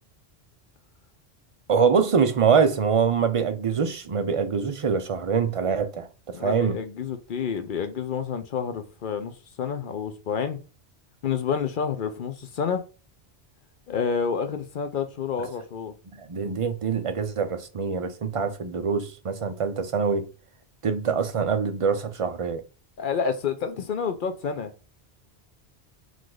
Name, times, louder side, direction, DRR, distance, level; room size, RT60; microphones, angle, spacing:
voice 1, 1.7-6.8 16.2-20.3 20.8-22.6, right 6 dB, 40° right, 0.5 m, -24 dB
voice 2, 6.3-10.6 11.2-12.8 13.9-15.9 23.0-24.7, left 6 dB, 60° left, 0.7 m, -29 dB
4.8 x 2.5 x 3.8 m
omnidirectional pair, 1.1 m